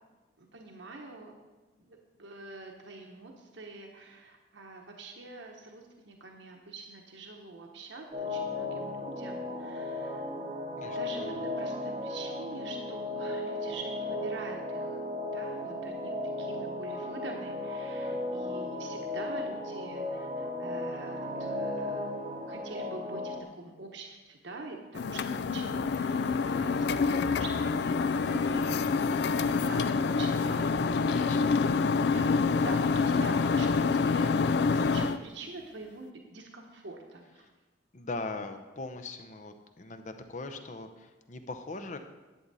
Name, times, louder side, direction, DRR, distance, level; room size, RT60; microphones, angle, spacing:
voice 1, 0.4-1.3 1.8-10.3 10.9-15.0 15.2-22.1 22.5-28.9 29.4-34.3 34.7-37.4, right 3 dB, 70° right, 2 dB, 1.0 m, -45 dB
sound 1, 8.1-23.4, left 2 dB, 40° right, 1.1 m, -35 dB
voice 2, 10.8-11.5 31.1-32.0 37.4-37.5 37.9-42.0, left 3 dB, 40° left, 8 dB, 0.7 m, -41 dB
sound 2, 25.0-35.2, left 4 dB, 60° left, 0.3 m, -27 dB
11.0 x 8.4 x 4.1 m, 1.2 s
head